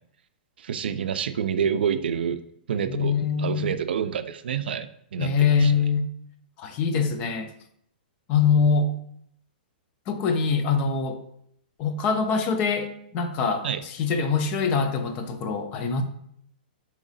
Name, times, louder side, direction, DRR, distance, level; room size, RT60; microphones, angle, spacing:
voice 1, 0.6-2.4 2.7-5.3 5.6-5.7 13.6-13.8, right 7 dB, 85° right, 11 dB, 0.4 m, -28 dB
voice 2, 2.9-3.8 5.2-6.0 6.6-7.5 8.3-8.9 10.1-11.2 11.8-16.0, left 5 dB, 25° left, 7 dB, 0.3 m, -24 dB
3.8 x 2.9 x 4.0 m, 0.70 s
hypercardioid pair, 170°, 5 cm